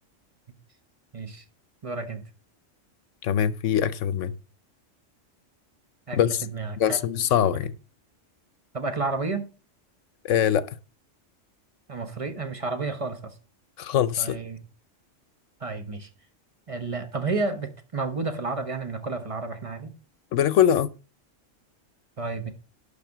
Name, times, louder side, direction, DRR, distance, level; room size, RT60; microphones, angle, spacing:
voice 1, 1.1-1.4 1.8-2.2 6.1-7.2 8.7-9.4 11.9-13.3 14.2-14.6 15.6-16.1 16.7-19.9 22.2-22.5, right 3 dB, 25° right, 1.2 m, -31 dB
voice 2, 3.2-4.3 6.1-6.4 6.8-7.7 10.2-10.7 13.8-14.4 20.3-20.9, left 9 dB, 75° left, 1.0 m, -22 dB
11.5 x 4.1 x 7.2 m
omnidirectional pair, 1.3 m